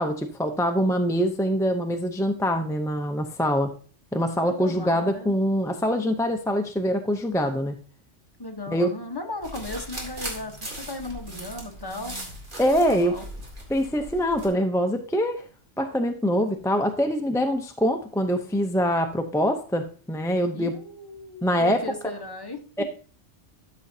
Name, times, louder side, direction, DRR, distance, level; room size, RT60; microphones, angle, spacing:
voice 1, 0.0-3.7 4.1-7.7 8.7-8.9 12.6-13.1 13.7-15.4 15.8-20.7 21.4-22.1 22.8-22.9, equal, 5° left, 5 dB, 0.4 m, -24 dB
voice 2, 4.3-5.3 8.4-12.1 12.7-13.2 20.5-22.8, left 2 dB, 20° left, 4 dB, 1.1 m, -36 dB
sound 1, 9.4-14.5, right 1 dB, 45° right, 2.3 m, -38 dB
12.5 x 6.3 x 2.7 m, 0.40 s
omnidirectional pair, 1.2 m